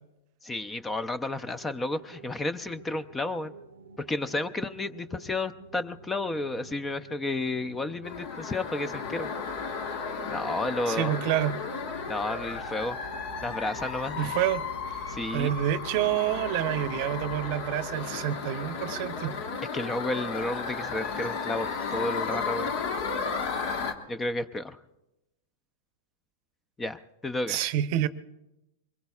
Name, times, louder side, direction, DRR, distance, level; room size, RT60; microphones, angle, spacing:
voice 1, 0.4-3.5 4.0-9.3 10.3-11.2 12.1-13.0 13.4-14.3 15.1-15.5 19.7-22.7 24.1-24.8 26.8-27.6, left 2 dB, 15° left, 14 dB, 0.6 m, -32 dB
sound 1, 1.3-19.6, right 4 dB, 90° right, 0.6 m, -48 dB
sound 2, 8.0-23.9, left 5 dB, 55° left, 1.5 m, -34 dB
voice 2, 10.9-11.6 14.2-14.6 15.3-19.4 27.5-28.1, right 12 dB, 55° right, 14 dB, 0.7 m, -28 dB
24.0 x 21.5 x 2.4 m, 0.93 s
hypercardioid pair, 115°, 0 cm